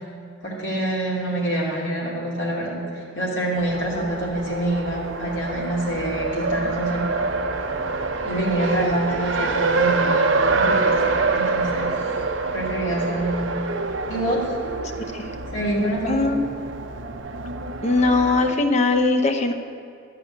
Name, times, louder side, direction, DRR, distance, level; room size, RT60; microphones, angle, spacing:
voice 1, 0.4-7.1 8.2-12.1 12.5-13.6 14.1-14.5 15.5-16.3, right 1 dB, 70° left, -5 dB, 2.7 m, -26 dB
Race car auto racing, 3.6-18.5, right 3 dB, 85° right, 0.7 m, -26 dB
voice 2, 16.1-16.4 17.8-19.5, left 3 dB, 35° left, 5 dB, 0.8 m, -20 dB
12.0 x 4.8 x 8.6 m, 2.4 s
head